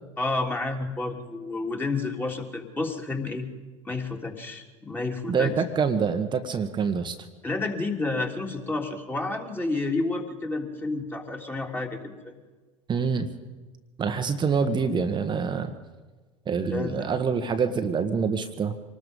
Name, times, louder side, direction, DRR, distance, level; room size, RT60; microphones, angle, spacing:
voice 1, 0.2-3.4 3.8-5.5 7.4-12.3 16.6-17.1, left 3 dB, 10° left, 2 dB, 3.3 m, -30 dB
voice 2, 5.3-7.2 12.9-13.3 14.0-15.7 16.4-18.7, right 5 dB, 25° right, 8 dB, 1.5 m, -26 dB
26.0 x 19.5 x 5.5 m, 1.3 s
figure-of-eight pair, 80°, 17 cm